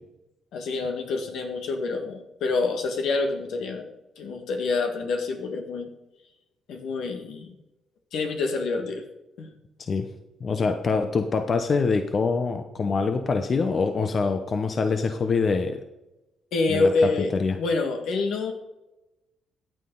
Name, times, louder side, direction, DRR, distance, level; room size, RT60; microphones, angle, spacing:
voice 1, 0.5-3.9 4.2-5.9 6.7-7.5 8.1-9.0 9.4-9.5 16.5-18.5, left 3 dB, 75° left, 4 dB, 1.8 m, -27 dB
voice 2, 10.4-15.8 16.7-16.9 17.3-17.6, left 4 dB, 45° left, 7 dB, 0.9 m, -24 dB
15.0 x 8.7 x 4.0 m, 0.95 s
cardioid pair, 90°, 0 cm